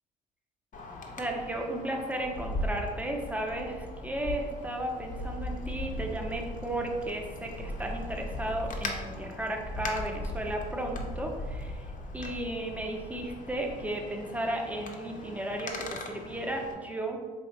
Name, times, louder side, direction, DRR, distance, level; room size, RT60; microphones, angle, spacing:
Wind, 0.7-16.7, left 1 dB, 45° left, 0.6 m, -38 dB
voice 1, 1.2-11.9 12.1-17.2, right 1 dB, 10° right, 1 dB, 0.7 m, -34 dB
4.0 x 2.8 x 2.7 m, 1.4 s
supercardioid pair, 65°, 18 cm